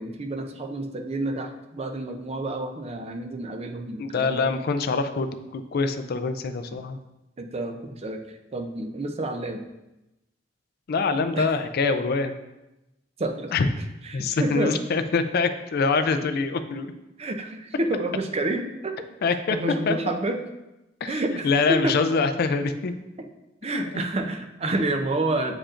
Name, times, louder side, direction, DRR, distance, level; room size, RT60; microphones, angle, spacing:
voice 1, 0.0-4.5 7.4-9.6 11.3-11.5 13.2-13.5 14.0-14.8 17.2-18.9 19.3-20.4 21.1-22.0 23.6-25.6, right 2 dB, 35° right, 5 dB, 0.5 m, -29 dB
voice 2, 4.0-7.0 10.9-12.4 13.5-13.7 14.1-16.9 19.2-19.6 19.9-20.0 21.0-22.9 23.7-24.0, left 4 dB, 55° left, 9 dB, 0.4 m, -25 dB
8.5 x 4.9 x 2.5 m, 0.95 s
head